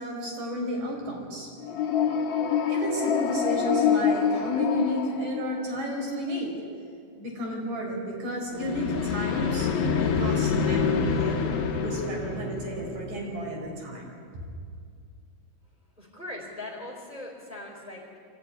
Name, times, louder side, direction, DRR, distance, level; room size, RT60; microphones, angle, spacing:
voice 1, 0.0-1.5 2.7-6.5 7.1-9.7 10.0-14.1 14.3-14.4, equal, 60° right, 0 dB, 6.4 m, -32 dB
sound 1, 1.6-5.9 8.5-13.5, left 6 dB, 50° left, 1.5 m, -26 dB
voice 2, 16.0-18.2, left 2 dB, ahead, -5 dB, 4.0 m, -40 dB
25.5 x 16.0 x 9.9 m, 2.2 s
omnidirectional pair, 4.1 m